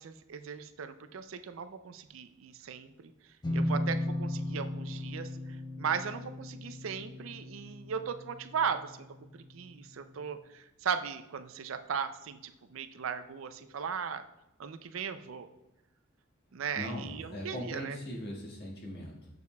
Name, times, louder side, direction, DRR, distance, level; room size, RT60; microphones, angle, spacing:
voice 1, 0.0-3.1 3.5-14.2 14.6-15.5 16.5-18.0, right 6 dB, 70° right, 10 dB, 0.4 m, -37 dB
sound 1, 3.4-9.0, left 1 dB, 20° left, 0.7 m, -36 dB
voice 2, 16.7-19.3, equal, 50° left, -2 dB, 1.6 m, -40 dB
7.0 x 6.5 x 2.3 m, 0.94 s
head